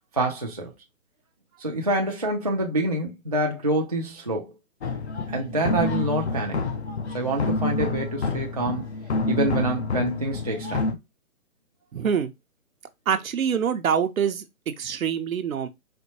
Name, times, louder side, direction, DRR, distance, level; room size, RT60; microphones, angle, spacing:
voice 1, 0.2-0.7 1.6-4.5 5.3-6.6 7.1-8.9 9.3-11.0, right 1 dB, 30° right, 0.4 m, -26 dB
sound 1, 4.8-10.9, left 3 dB, 50° left, 0.7 m, -28 dB
voice 2, 11.9-12.3 13.1-15.7, right 7 dB, 75° right, 0.7 m, -25 dB
4.3 x 2.2 x 2.7 m
hypercardioid pair, 155°, 42 cm